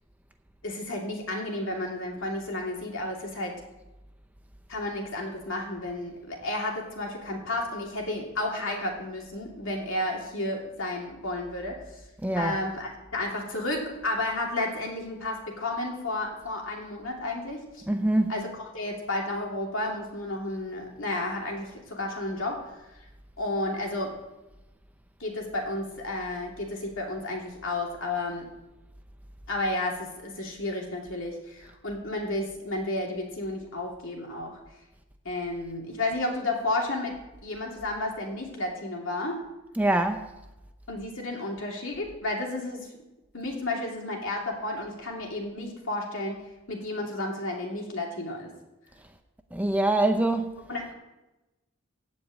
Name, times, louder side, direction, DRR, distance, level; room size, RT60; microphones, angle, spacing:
voice 1, 0.6-3.6 4.7-12.0 12.4-17.8 18.3-22.6 23.4-24.1 25.2-28.5 29.5-34.6 35.2-37.1 37.4-39.4 40.9-42.9 43.3-46.4 46.7-48.5 50.7-50.9, left 2 dB, 60° left, 2.8 m, -32 dB
voice 2, 12.2-12.6 17.9-18.3 39.8-40.3 49.5-50.6, right 1 dB, 5° right, 0.6 m, -24 dB
15.5 x 5.3 x 8.8 m
head